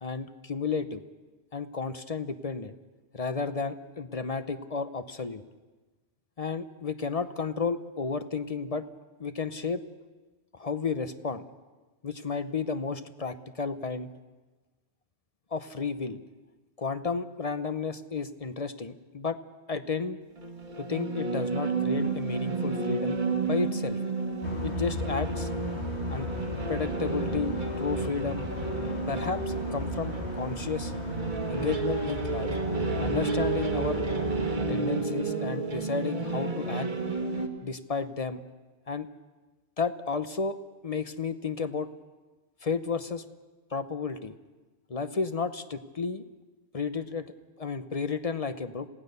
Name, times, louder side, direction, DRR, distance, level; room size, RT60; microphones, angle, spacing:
voice 1, 0.0-1.0 1.5-2.7 3.1-5.4 6.4-8.9 9.2-9.8 10.5-11.4 12.0-14.1 15.5-16.2 16.8-19.4 19.7-20.2 20.8-23.2 23.4-24.0 24.6-25.5 26.1-26.3 26.7-28.5 29.1-30.9 31.5-32.5 33.0-34.0 34.7-36.9 37.6-38.4 38.9-39.1 39.8-40.6 40.8-41.9 42.6-43.2 43.7-44.4 44.9-46.2 46.7-48.9, left 5 dB, 40° left, 11 dB, 0.8 m, -32 dB
sound 1, 20.4-37.5, right 4 dB, 45° right, 1.7 m, -31 dB
sound 2, 24.4-34.6, left 3 dB, 80° left, 2.6 m, -36 dB
27.0 x 17.0 x 6.8 m, 1.2 s
omnidirectional pair, 1.1 m